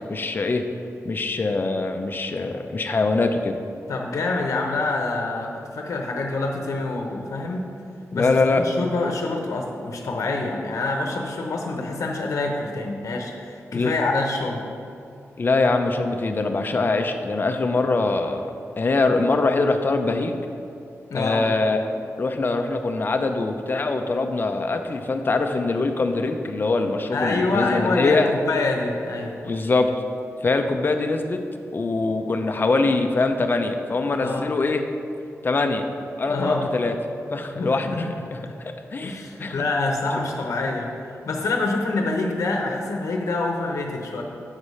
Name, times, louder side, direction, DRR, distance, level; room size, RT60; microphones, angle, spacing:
voice 1, 0.1-0.6 1.0-3.5 8.1-8.7 13.7-13.9 15.4-18.5 18.8-20.4 21.1-21.8 22.2-28.3 29.4-29.9 30.4-31.4 31.7-34.8 35.4-35.9 36.2-37.0 37.3-38.0 38.3-39.6, left 3 dB, 40° left, 6 dB, 0.6 m, -23 dB
voice 2, 3.9-7.7 8.1-8.4 8.6-14.7 21.1-21.4 27.1-29.3 34.2-34.6 36.3-36.7 37.6-38.1 39.0-44.2, left 3 dB, 80° left, 1 dB, 0.8 m, -26 dB
7.4 x 4.8 x 5.5 m, 2.6 s
wide cardioid pair, 105°, 5 cm